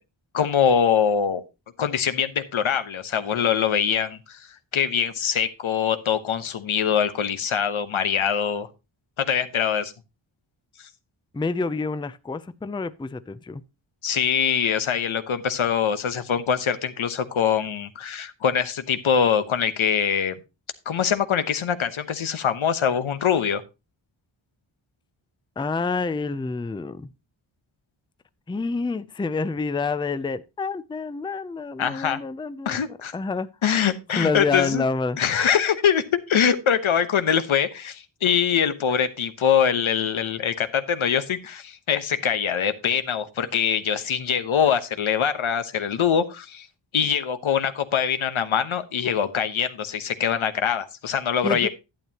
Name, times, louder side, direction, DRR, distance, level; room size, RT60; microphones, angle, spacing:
voice 1, 0.3-1.4 1.8-4.4 4.7-8.7 9.2-9.9 14.0-20.4 20.9-23.6 31.8-32.2 32.6-33.1 33.6-34.8 35.2-46.7 46.9-51.7, left 7 dB, 85° left, 1.1 m, -23 dB
voice 2, 11.3-13.6 25.6-27.1 28.5-33.5 34.2-35.2 51.4-51.7, left 4 dB, 10° left, 0.4 m, -28 dB
11.5 x 9.1 x 2.9 m
wide cardioid pair, 110°, 47 cm